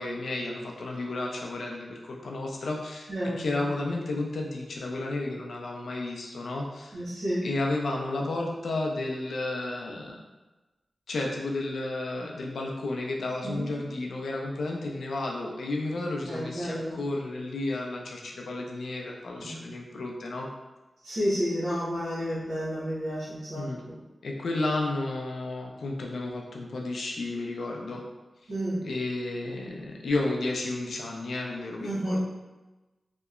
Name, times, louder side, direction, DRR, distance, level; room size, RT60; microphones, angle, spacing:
voice 1, 0.0-3.1 3.4-7.0 7.4-10.2 11.1-20.5 23.5-23.8 24.2-28.0 28.4-28.5 28.8-32.2, left 2 dB, 85° left, 0 dB, 0.4 m, -32 dB
voice 2, 3.1-3.6 6.9-7.5 13.4-13.6 16.3-17.0 19.4-19.7 21.0-24.0 28.5-28.8 31.8-32.2, equal, 90° right, -13 dB, 0.8 m, -31 dB
2.8 x 2.1 x 2.3 m, 1.1 s
cardioid pair, 45°, 0 cm